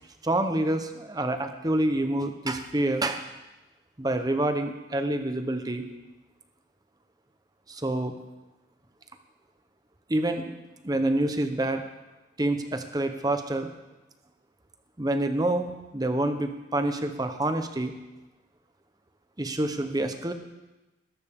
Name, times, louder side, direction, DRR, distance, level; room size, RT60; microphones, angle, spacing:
voice 1, 0.2-3.2 4.0-5.8 7.7-8.1 10.1-10.6 10.8-11.8 12.4-13.7 15.0-17.9 19.4-20.3, right 1 dB, 20° right, 7 dB, 1.0 m, -27 dB
20.5 x 11.5 x 3.7 m, 1.0 s
head